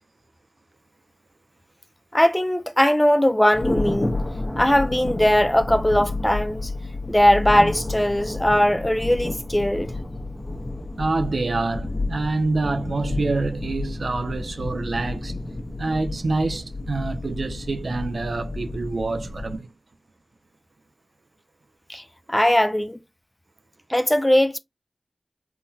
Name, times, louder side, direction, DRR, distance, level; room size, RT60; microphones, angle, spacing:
voice 1, 2.1-4.2 4.6-6.7 7.1-9.9 21.9-22.0 22.3-23.0 23.9-24.6, left 1 dB, 15° left, 0.4 m, -19 dB
Thunder, 3.5-19.5, left 2 dB, 35° left, 1.0 m, -30 dB
voice 2, 11.0-15.3 15.8-19.7, right 3 dB, 80° right, 0.4 m, -26 dB
3.7 x 2.1 x 2.7 m
cardioid pair, 45°, 0 cm